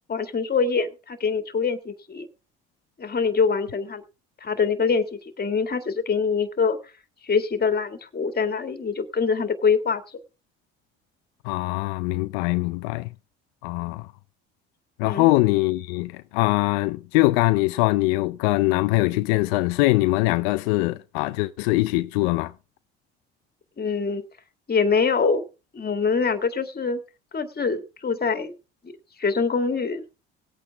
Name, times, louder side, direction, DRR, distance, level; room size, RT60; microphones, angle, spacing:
voice 1, 0.1-2.3 3.0-4.0 4.4-6.8 7.2-10.2 15.1-15.3 23.8-24.2 24.7-25.4 25.7-27.0 27.3-28.5 28.8-28.9 29.2-30.0, left 5 dB, 35° left, 2.1 m, -24 dB
voice 2, 11.4-13.1 13.6-14.1 15.0-22.5, left 21 dB, 90° left, 0.5 m, -22 dB
19.0 x 8.6 x 3.5 m
supercardioid pair, 70°, 29 cm